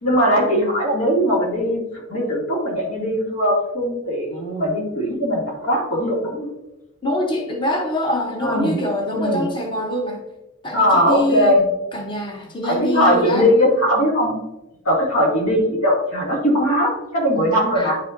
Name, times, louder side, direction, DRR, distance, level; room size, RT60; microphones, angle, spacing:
voice 1, 0.0-6.5 8.4-8.8 9.1-9.5 10.7-11.6 12.6-14.4 14.8-18.0, equal, 90° left, -3 dB, 2.4 m, -19 dB
voice 2, 7.0-10.2 10.6-11.6 11.9-13.5 17.7-17.9, left 1 dB, 25° left, 2 dB, 0.8 m, -24 dB
9.8 x 5.4 x 2.6 m, 0.95 s
head